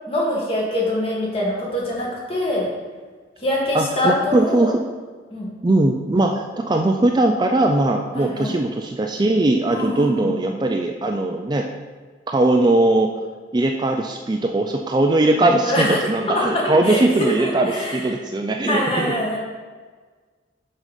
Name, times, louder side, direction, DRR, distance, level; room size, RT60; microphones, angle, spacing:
voice 1, 0.1-2.7 3.4-4.7 5.3-5.5 8.1-8.5 9.7-10.6 15.6-16.0 16.5-18.0 18.7-19.4, left 1 dB, 30° left, -4 dB, 1.8 m, -24 dB
voice 2, 3.7-4.7 5.6-11.7 12.3-13.1 13.5-19.1, right 2 dB, 25° right, 3 dB, 0.4 m, -20 dB
6.2 x 5.4 x 5.2 m, 1.5 s
head